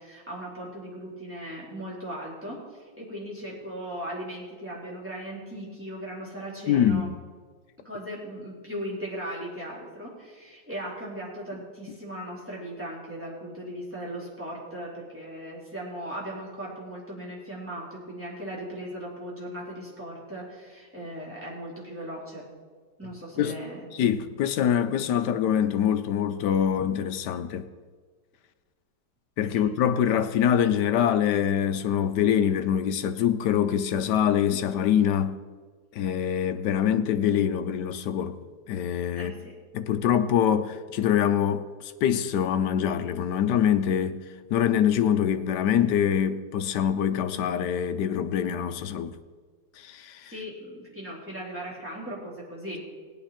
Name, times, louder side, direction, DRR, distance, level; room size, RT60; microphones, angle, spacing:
voice 1, 0.0-7.1 7.8-22.5 23.0-23.8 29.5-29.6 39.2-39.5 50.3-52.8, right 1 dB, 5° right, 3.8 m, -38 dB
voice 2, 6.7-7.1 23.4-23.6 23.9-27.6 29.4-35.4 35.9-38.4 38.7-39.3 39.7-44.2 44.5-49.2 49.8-50.3, left 9 dB, 70° left, 1.2 m, -24 dB
18.5 x 8.8 x 4.3 m
omnidirectional pair, 2.1 m